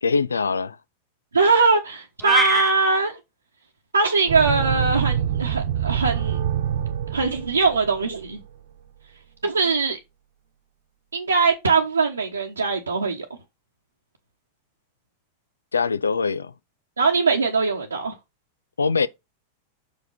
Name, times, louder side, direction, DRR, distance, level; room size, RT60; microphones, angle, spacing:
voice 1, 0.0-0.8 15.7-16.5 18.8-19.1, left 5 dB, 75° left, 0.5 m, -22 dB
voice 2, 1.3-3.2 3.9-6.4 7.1-8.4 9.4-10.0 11.1-13.3 17.0-18.1, right 4 dB, 75° right, 1.1 m, -21 dB
sound 1, 2.2-2.7, left 1 dB, ahead, 0.3 m, -23 dB
sound 2, 4.3-8.4, right 9 dB, 55° right, 1.1 m, -26 dB
6.4 x 4.8 x 4.6 m
figure-of-eight pair, 90°, 0 cm